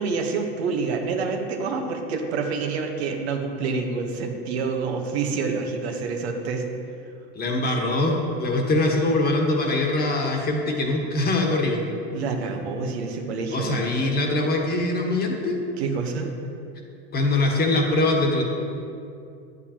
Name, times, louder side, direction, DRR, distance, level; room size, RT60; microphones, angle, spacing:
voice 1, 0.0-6.6 12.1-13.9 15.8-16.3, right 4 dB, 80° right, 3 dB, 1.1 m, -27 dB
voice 2, 7.3-11.8 13.5-15.6 17.1-18.4, left 2 dB, 30° left, 1 dB, 1.4 m, -23 dB
9.3 x 8.0 x 2.9 m, 2.5 s
supercardioid pair, 105°, 32 cm